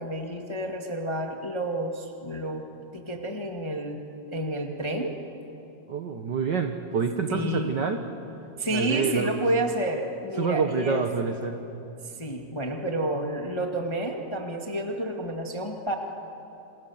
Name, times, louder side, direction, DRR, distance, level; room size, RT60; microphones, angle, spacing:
voice 1, 0.0-2.7 2.9-4.0 4.3-5.2 7.3-7.7 8.6-11.0 12.2-15.9, right 1 dB, 15° left, 2 dB, 1.0 m, -30 dB
voice 2, 5.9-8.0 8.7-9.3 10.4-11.6, right 5 dB, 60° right, 6 dB, 1.1 m, -27 dB
29.0 x 27.0 x 7.2 m, 3.0 s
omnidirectional pair, 3.5 m